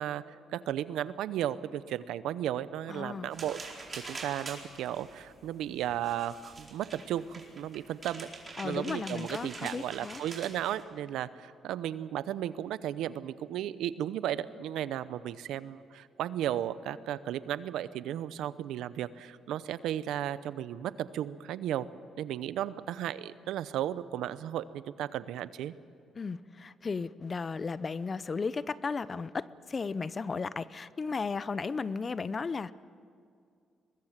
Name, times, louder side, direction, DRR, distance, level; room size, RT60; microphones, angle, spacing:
voice 1, 0.0-3.6 3.9-8.3 8.6-21.9 22.2-25.7, right 11 dB, 85° right, 15 dB, 0.7 m, -35 dB
voice 2, 2.9-3.3 8.6-10.2 26.1-32.7, left 4 dB, 35° left, 17 dB, 0.7 m, -35 dB
sound 1, 3.3-10.8, right 3 dB, 30° right, 4.5 m, -45 dB
23.0 x 20.5 x 7.5 m, 2.3 s
cardioid pair, 90°, 0 cm